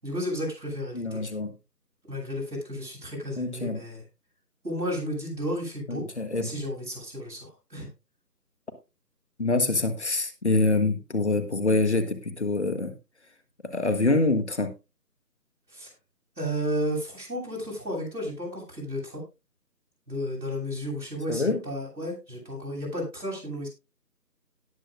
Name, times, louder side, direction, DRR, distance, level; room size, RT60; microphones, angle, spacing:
voice 1, 0.0-1.2 2.1-4.0 4.6-6.0 6.4-7.9 15.7-15.9 16.4-19.2 20.1-23.7, equal, 85° right, -1 dB, 7.7 m, -33 dB
voice 2, 0.9-1.5 3.4-3.8 5.9-6.5 9.4-12.9 13.6-14.7 21.3-21.6, left 2 dB, 45° left, 10 dB, 1.4 m, -25 dB
17.5 x 7.5 x 2.4 m, 0.27 s
figure-of-eight pair, 165°, 48 cm